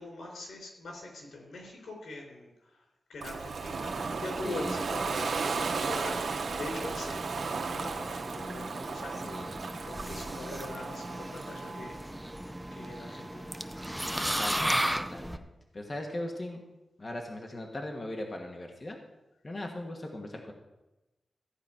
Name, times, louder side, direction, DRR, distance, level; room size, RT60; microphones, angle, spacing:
voice 1, 0.0-2.5 3.1-12.2 12.7-13.5, left 2 dB, 90° left, 0 dB, 4.1 m, -42 dB
Ocean, 3.2-12.0, right 5 dB, 75° right, 1.1 m, -35 dB
sound 1, 3.7-15.4, equal, 5° right, 0.6 m, -37 dB
voice 2, 4.4-4.8 9.1-9.6 14.2-15.5 15.7-16.6 17.0-19.0 19.4-20.5, left 1 dB, 30° left, 1 dB, 1.4 m, -39 dB
sound 2, 7.3-14.3, right 3 dB, 50° right, 2.4 m, -49 dB
14.5 x 5.1 x 8.8 m, 1.0 s
wide cardioid pair, 115°, 0 cm